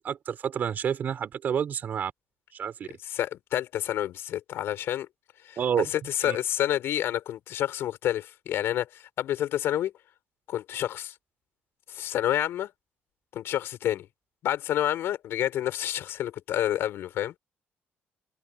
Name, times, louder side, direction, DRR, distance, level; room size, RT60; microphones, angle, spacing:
voice 1, 0.0-2.1 2.5-2.9 5.6-5.9 6.2-6.4, right 8 dB, 45° right, 5.4 m, -29 dB
voice 2, 3.0-5.1 5.4-9.9 10.5-11.1 11.9-12.7 13.3-14.1 14.4-17.3, left 12 dB, 65° left, 6.9 m, -29 dB
cardioid pair, 155°, 4 cm